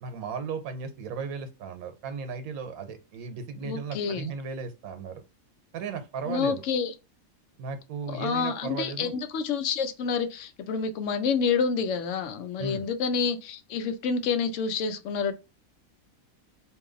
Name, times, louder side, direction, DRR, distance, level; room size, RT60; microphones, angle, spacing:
voice 1, 0.0-5.2 5.7-6.6 7.6-9.1 12.6-12.9, right 5 dB, 85° right, 1.1 m, -35 dB
voice 2, 3.6-4.3 6.3-6.9 8.1-15.3, left 5 dB, 70° left, 0.9 m, -28 dB
2.9 x 2.6 x 3.7 m
omnidirectional pair, 1.5 m